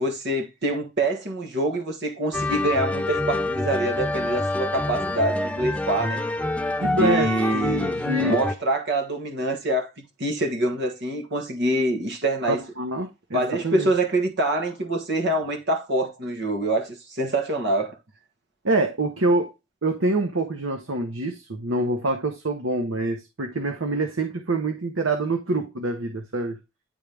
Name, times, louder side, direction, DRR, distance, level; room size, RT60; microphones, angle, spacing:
voice 1, 0.0-6.2 6.9-8.0 8.3-9.9 10.2-12.6 13.3-18.0, right 1 dB, 60° right, 1.4 m, -25 dB
sound 1, 2.3-8.5, left 2 dB, 5° left, 0.5 m, -26 dB
voice 2, 6.8-8.4 12.4-13.9 18.6-19.5 19.8-26.6, right 2 dB, 80° right, 1.0 m, -26 dB
10.5 x 3.7 x 3.4 m
head